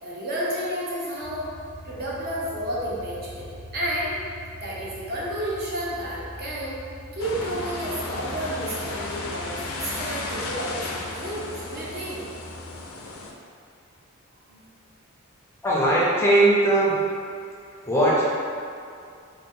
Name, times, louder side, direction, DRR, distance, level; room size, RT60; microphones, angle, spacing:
voice 1, 0.0-1.5 1.8-4.1 4.6-6.8 7.1-12.2 14.5-14.6, right 1 dB, 50° right, -6 dB, 0.6 m, -31 dB
sound 1, 1.2-12.9, equal, 80° right, 1.1 m, -43 dB
sound 2, 7.2-13.3, left 2 dB, 70° left, 0.4 m, -34 dB
voice 2, 15.6-17.0 17.8-18.2, right 1 dB, 10° left, -7 dB, 0.5 m, -19 dB
2.7 x 2.1 x 3.6 m, 2.4 s
head